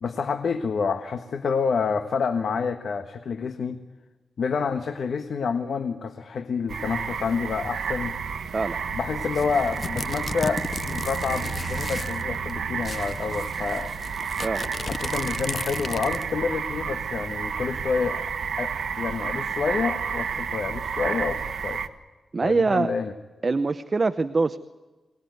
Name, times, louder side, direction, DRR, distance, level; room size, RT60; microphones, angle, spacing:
voice 1, 0.0-3.8 4.4-8.1 8.9-13.9 14.9-18.2 18.6-21.8 22.4-23.1, left 5 dB, 70° left, 7 dB, 1.4 m, -28 dB
sound 1, 6.7-21.9, right 6 dB, 80° right, 1.4 m, -31 dB
sound 2, 9.2-12.2 12.5-12.6 12.8-16.4, left 4 dB, 40° left, 0.7 m, -35 dB
voice 2, 14.4-14.7 22.3-22.9 23.4-24.6, right 3 dB, 35° right, 11 dB, 0.8 m, -24 dB
25.0 x 19.5 x 9.4 m, 1.3 s
wide cardioid pair, 105°, 0 cm